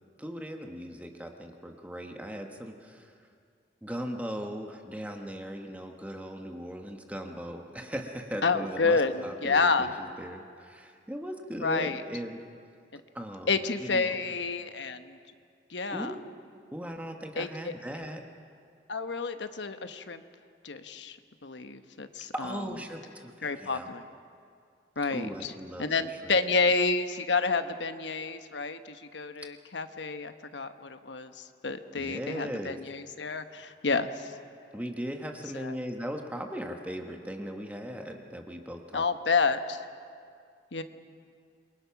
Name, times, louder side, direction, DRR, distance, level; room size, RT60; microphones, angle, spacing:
voice 1, 0.2-3.2 3.8-12.4 13.1-14.1 15.9-16.1 16.7-18.2 22.3-23.9 25.1-26.4 32.0-32.8 34.7-39.0, equal, 10° right, 3 dB, 1.2 m, -38 dB
voice 2, 8.4-9.9 11.6-12.0 12.9-13.0 13.5-15.2 15.7-16.1 17.3-17.7 18.9-20.2 20.6-21.2 21.4-22.6 23.4-24.0 25.0-25.5 25.8-34.4 35.5-35.8 38.9-39.9 40.7-40.8, left 4 dB, 80° left, 9 dB, 1.1 m, -29 dB
27.5 x 22.5 x 5.9 m, 2.3 s
head